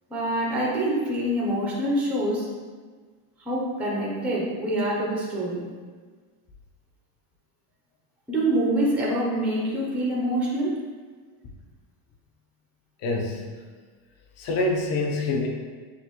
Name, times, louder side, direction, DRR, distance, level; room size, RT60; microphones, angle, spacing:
voice 1, 0.1-2.5 3.4-5.7 8.3-10.8, right 1 dB, 5° right, -4 dB, 0.5 m, -25 dB
voice 2, 13.0-13.4 14.4-15.5, left 2 dB, 35° left, 0 dB, 0.6 m, -26 dB
6.5 x 2.5 x 2.9 m, 1.5 s
cardioid pair, 160°, 44 cm